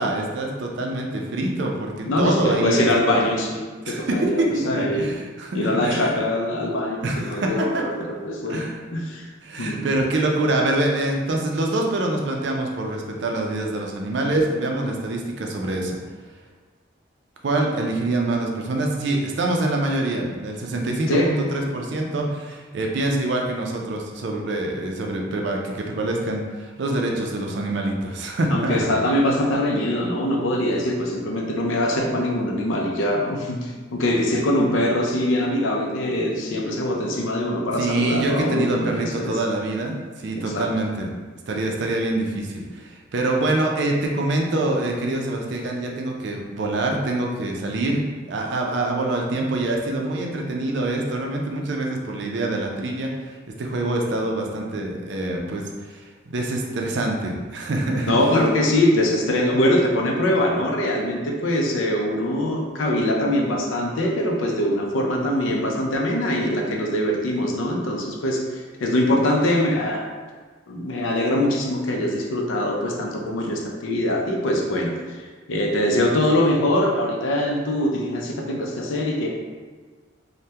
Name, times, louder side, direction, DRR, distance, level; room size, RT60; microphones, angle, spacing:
voice 1, 0.0-2.9 3.9-6.1 7.0-8.0 8.5-8.8 9.4-16.0 17.4-28.9 37.8-41.1 41.5-53.1 53.6-58.1, right 2 dB, 60° right, 1 dB, 0.4 m, -25 dB
voice 2, 2.1-5.1 5.5-7.0 7.2-8.7 8.9-9.3 9.6-9.8 21.1-21.3 28.5-39.3 40.5-40.7 58.1-70.1 70.7-75.2 75.5-79.3, left 1 dB, 75° left, 0 dB, 0.5 m, -23 dB
3.3 x 2.1 x 2.8 m, 1.4 s
head